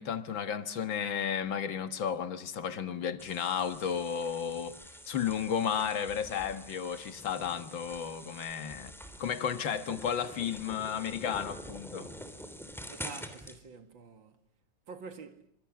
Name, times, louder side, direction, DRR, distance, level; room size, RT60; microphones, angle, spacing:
voice 1, 0.0-4.8 5.1-8.9 9.2-12.1, left 8 dB, 75° left, 2.2 m, -33 dB
sound 1, 3.2-13.6, equal, ahead, 3.1 m, -46 dB
voice 2, 12.9-14.4 14.9-15.5, right 5 dB, 75° right, 2.7 m, -47 dB
27.5 x 26.0 x 7.5 m
omnidirectional pair, 2.1 m